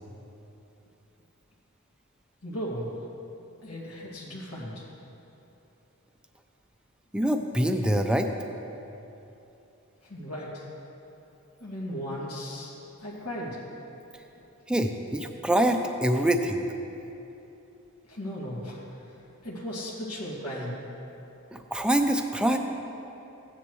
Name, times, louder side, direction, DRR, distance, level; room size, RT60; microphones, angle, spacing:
voice 1, 2.4-2.9 3.6-4.9 10.0-10.7 11.6-12.7 13.0-13.6 18.1-18.8 19.4-20.8, equal, 80° left, -7 dB, 2.3 m, -36 dB
voice 2, 7.1-8.3 14.7-16.7 21.5-22.6, right 1 dB, 5° right, 5 dB, 0.5 m, -25 dB
15.5 x 9.9 x 3.2 m, 2.9 s
head